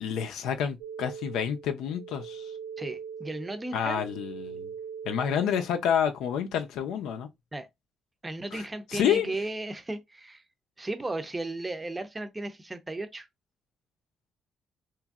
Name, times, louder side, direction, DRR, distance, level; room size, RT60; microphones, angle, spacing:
voice 1, 0.0-2.5 3.7-4.7 5.0-7.3 8.5-8.6 8.9-9.4, left 8 dB, 90° left, 0.5 m, -28 dB
sound 1, 0.8-5.8, right 7 dB, 80° right, 0.4 m, -41 dB
voice 2, 2.8-4.1 7.5-7.7 8.2-10.4 10.8-13.3, right 2 dB, 20° right, 0.5 m, -35 dB
3.0 x 2.5 x 2.3 m
cardioid pair, 90°, 0 cm